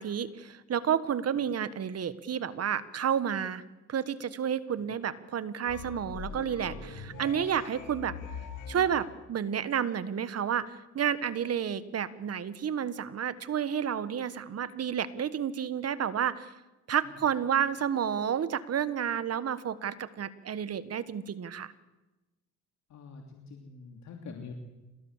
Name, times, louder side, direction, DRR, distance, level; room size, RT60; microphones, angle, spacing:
voice 1, 0.0-3.6 3.9-8.2 8.7-16.5 16.9-21.7, right 8 dB, 55° right, 15 dB, 1.5 m, -31 dB
sound 1, 5.7-9.0, left 5 dB, 85° left, 4.3 m, -42 dB
voice 2, 22.9-24.5, left 5 dB, 65° left, 3 dB, 3.0 m, -45 dB
27.5 x 19.5 x 7.4 m, 1.1 s
cardioid pair, 90°, 30 cm